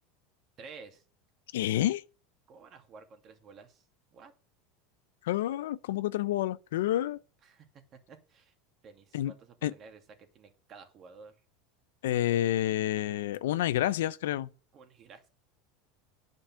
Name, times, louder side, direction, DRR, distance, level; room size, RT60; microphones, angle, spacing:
voice 1, 0.6-1.0 2.5-3.9 4.1-4.3 7.4-7.7 8.1-8.5 8.8-11.4 14.7-15.3, right 5 dB, 35° right, 2.5 m, -52 dB
voice 2, 1.5-2.0 5.2-7.2 9.1-9.3 9.6-9.7 12.0-14.5, left 13 dB, 85° left, 0.6 m, -29 dB
10.0 x 5.3 x 7.5 m
supercardioid pair, 125°, 0 cm